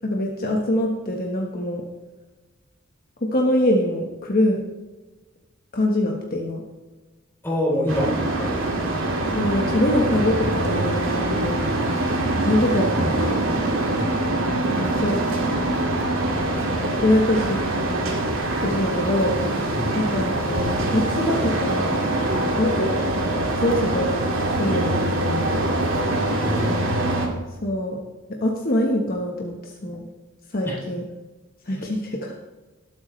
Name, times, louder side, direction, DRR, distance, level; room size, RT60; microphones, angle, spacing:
voice 1, 0.0-1.8 3.2-4.6 5.7-6.6 8.3-8.5 9.3-11.6 12.5-13.5 14.6-15.4 16.9-18.0 18.6-19.4 19.9-22.0 22.6-22.9 23.6-24.1 24.6-25.7 27.6-28.0 28.4-30.1 30.5-31.0 31.7-32.3, left 1 dB, 45° left, 0 dB, 1.3 m, -24 dB
voice 2, 7.4-8.6 14.0-14.2 19.7-20.0 26.3-26.8 30.6-30.8 31.8-31.9, left 1 dB, 10° left, -4 dB, 3.7 m, -26 dB
sound 1, 7.9-27.3, right 1 dB, 75° right, 2.3 m, -24 dB
19.0 x 8.3 x 3.2 m, 1.2 s
head